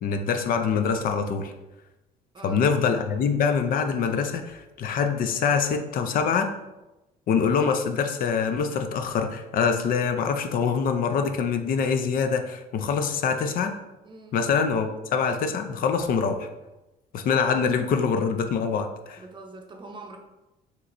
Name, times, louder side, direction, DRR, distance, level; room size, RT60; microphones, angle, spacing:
voice 1, 0.0-1.5 2.4-6.5 7.3-13.7 14.3-16.5 17.1-19.2, left 6 dB, 60° left, 7 dB, 0.5 m, -24 dB
voice 2, 2.3-2.7 14.0-14.5 19.2-20.2, right 3 dB, 30° right, 3 dB, 0.6 m, -44 dB
5.6 x 3.0 x 2.6 m, 1.0 s
cardioid pair, 110°, 17 cm